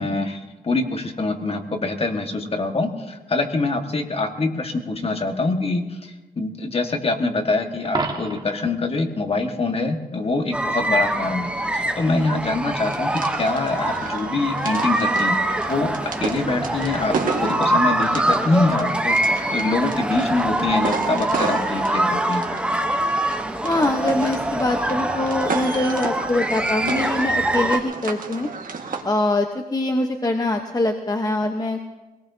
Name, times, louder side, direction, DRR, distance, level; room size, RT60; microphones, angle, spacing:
voice 1, 0.0-11.5 11.7-13.1 13.4-22.4, left 3 dB, 40° left, 4 dB, 1.7 m, -24 dB
Coin (dropping), 7.8-8.7 14.8-15.0, right 3 dB, 30° right, 1.7 m, -29 dB
sound 1, 10.5-27.8, right 1 dB, 5° right, 1.0 m, -24 dB
sound 2, 12.8-29.0, right 5 dB, 65° right, 1.7 m, -32 dB
voice 2, 23.6-28.5 29.0-31.9, left 2 dB, 25° left, 4 dB, 1.0 m, -23 dB
23.5 x 18.5 x 2.8 m, 1.1 s
cardioid pair, 85°, 15 cm